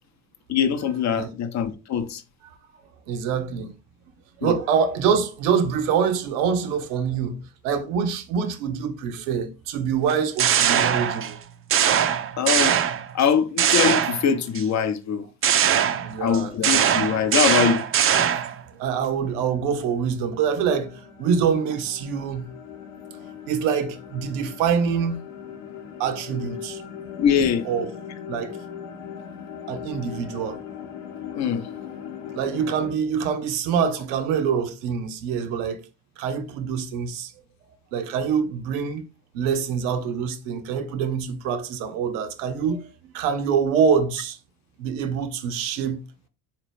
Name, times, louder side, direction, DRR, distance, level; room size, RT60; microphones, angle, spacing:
voice 1, 0.5-2.2 4.4-4.6 12.4-12.8 13.1-15.3 16.2-17.8 27.2-27.7 31.4-31.7, left 7 dB, 45° left, 0.6 m, -23 dB
voice 2, 3.1-3.7 4.4-7.4 7.6-11.4 16.0-16.5 18.7-22.5 23.5-25.2 26.0-26.8 27.6-27.9 28.3-28.6 29.7-30.6 32.3-35.8 36.2-37.3 37.9-39.1 39.3-44.4 44.8-46.0, right 7 dB, 75° right, 0.7 m, -25 dB
sound 1, 10.1-11.4 11.7-13.2 13.6-14.6 15.4-18.6, right 9 dB, 35° right, 0.4 m, -21 dB
sound 2, 18.5-32.9, left 8 dB, 75° left, 0.8 m, -39 dB
3.8 x 2.9 x 3.3 m
hypercardioid pair, 60°, 40 cm